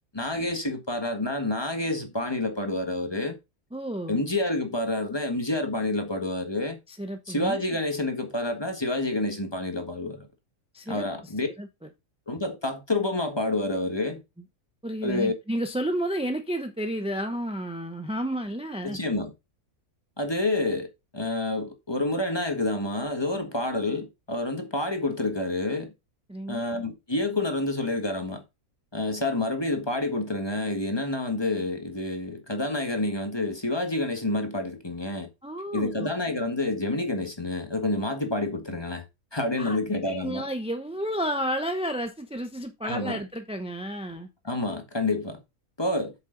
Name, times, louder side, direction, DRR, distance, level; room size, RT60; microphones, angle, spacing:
voice 1, 0.1-3.4 4.1-6.8 7.3-10.3 10.9-11.5 12.3-14.2 15.0-15.3 18.8-19.3 20.2-20.9 21.1-25.9 26.5-28.4 28.9-35.3 35.7-39.0 39.3-40.5 42.8-43.2 44.4-45.4 45.8-46.1, left 2 dB, 20° left, 1.4 m, -28 dB
voice 2, 3.7-4.2 6.9-7.6 10.7-11.1 11.6-11.7 14.8-19.0 26.3-26.6 35.4-36.1 39.6-39.8 40.1-44.3, equal, 5° right, 0.5 m, -31 dB
8.3 x 6.7 x 3.9 m
omnidirectional pair, 1.6 m